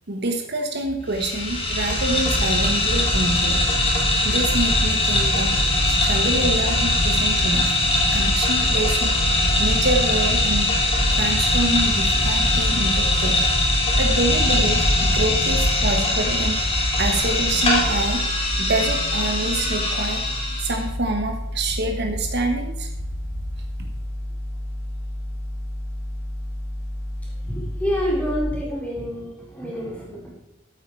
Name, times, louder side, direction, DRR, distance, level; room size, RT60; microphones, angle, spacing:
voice 1, 0.1-3.6 4.2-5.6 5.9-7.7 8.1-9.1 9.5-10.7 11.1-13.3 13.8-18.2 18.6-20.2 20.6-22.9, right 2 dB, 55° right, 4 dB, 1.2 m, -26 dB
sound 1, 1.1-20.8, left 1 dB, 30° left, 2.8 m, -21 dB
sound 2, 12.0-28.4, left 1 dB, 65° left, 3.2 m, -31 dB
voice 2, 27.4-30.3, equal, 5° left, -5 dB, 3.8 m, -28 dB
13.0 x 8.3 x 4.6 m, 0.88 s
head